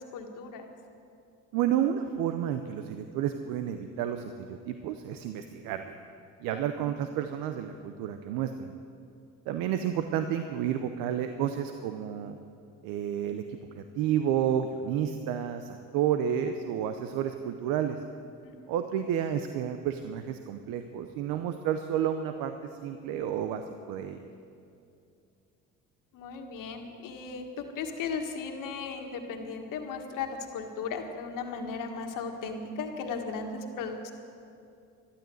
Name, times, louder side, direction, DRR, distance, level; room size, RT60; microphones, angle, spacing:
voice 1, 0.1-0.7 6.5-6.6 18.4-18.7 26.1-34.1, left 5 dB, 80° left, 4 dB, 1.8 m, -36 dB
voice 2, 1.5-6.0 6.4-8.7 9.5-12.4 12.8-18.0 18.7-22.5 22.8-24.3, right 9 dB, 90° right, 8 dB, 0.7 m, -31 dB
13.0 x 12.0 x 7.8 m, 2.5 s
supercardioid pair, 75°, 32 cm